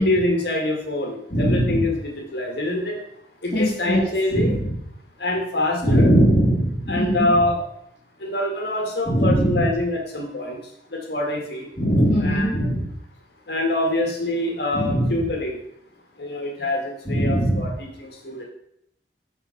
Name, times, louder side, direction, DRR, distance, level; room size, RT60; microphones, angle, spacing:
voice 1, 0.0-3.0 3.4-4.6 5.2-6.1 6.9-7.6 8.2-10.6 10.9-11.7 12.2-12.7 13.5-15.6 16.2-18.4, left 1 dB, 65° left, 0 dB, 1.9 m, -25 dB
voice 2, 1.3-1.9 3.5-4.0 4.3-4.8 5.8-7.3 9.1-9.7 11.8-12.9 14.7-15.2 17.1-17.7, equal, 30° left, -10 dB, 2.8 m, -20 dB
6.7 x 5.8 x 5.8 m, 0.76 s
head